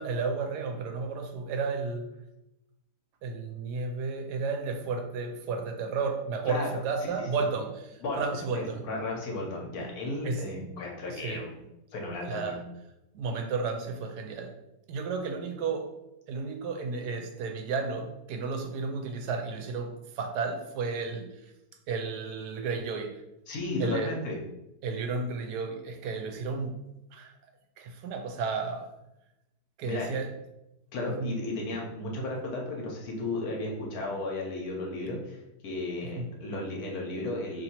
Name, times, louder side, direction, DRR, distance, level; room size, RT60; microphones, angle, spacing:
voice 1, 0.0-2.1 3.2-8.8 9.8-9.9 10.2-10.5 11.1-11.5 12.2-12.6 13.1-14.5 14.9-15.9 16.3-21.3 21.9-23.2 23.8-24.1 24.8-27.3 27.8-28.9 29.8-30.3 31.2-31.3 36.1-36.3, right 4 dB, 80° right, 5 dB, 1.1 m, -33 dB
voice 2, 6.5-6.8 7.2-7.5 8.0-11.5 11.9-12.6 23.5-24.4 29.8-30.2 30.9-37.6, left 2 dB, 65° left, -1 dB, 1.3 m, -34 dB
3.0 x 2.7 x 4.2 m, 0.90 s
omnidirectional pair, 1.7 m